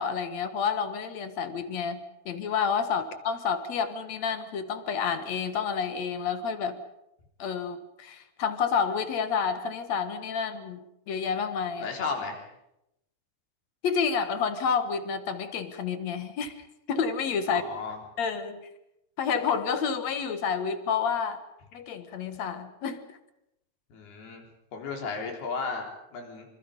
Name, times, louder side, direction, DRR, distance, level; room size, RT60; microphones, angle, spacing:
voice 1, 0.0-6.8 7.4-11.9 13.8-16.5 16.9-17.6 18.2-18.6 19.2-21.4 21.7-23.0, left 6 dB, 55° left, 9 dB, 2.2 m, -29 dB
voice 2, 11.8-12.4 17.5-18.0 23.9-24.4 24.7-26.5, left 4 dB, 80° left, 2 dB, 5.8 m, -34 dB
26.0 x 25.5 x 5.4 m, 0.84 s
omnidirectional pair, 4.5 m